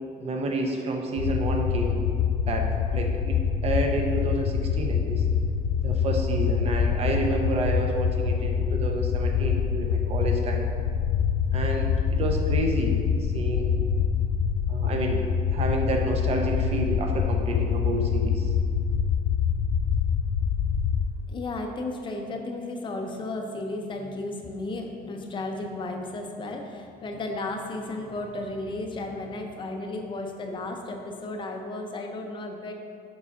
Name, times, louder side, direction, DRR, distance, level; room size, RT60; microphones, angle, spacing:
voice 1, 0.2-2.0 2.5-5.2 5.8-10.7 11.5-13.7 14.7-15.2 15.5-18.5, right 2 dB, 40° right, 2 dB, 0.7 m, -29 dB
sound 1, 1.2-21.0, left 7 dB, 75° left, 0.4 m, -25 dB
voice 2, 21.3-32.7, left 2 dB, 30° left, 3 dB, 0.6 m, -34 dB
4.9 x 4.7 x 5.5 m, 2.3 s
cardioid pair, 165°, 16 cm